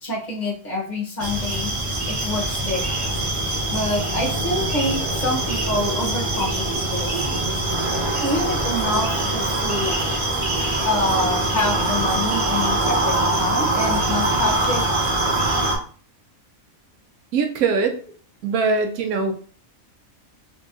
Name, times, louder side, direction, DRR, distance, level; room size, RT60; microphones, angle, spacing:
voice 1, 0.0-1.7 2.1-2.8 3.7-7.3 8.2-9.9 10.8-14.8, left 2 dB, 35° left, -4 dB, 1.4 m, -26 dB
sound 1, 1.2-15.8, right 2 dB, 45° right, 0.4 m, -23 dB
voice 2, 17.3-18.0 18.4-19.3, right 4 dB, 90° right, 5 dB, 1.1 m, -21 dB
3.5 x 2.9 x 2.6 m, 0.43 s
omnidirectional pair, 1.5 m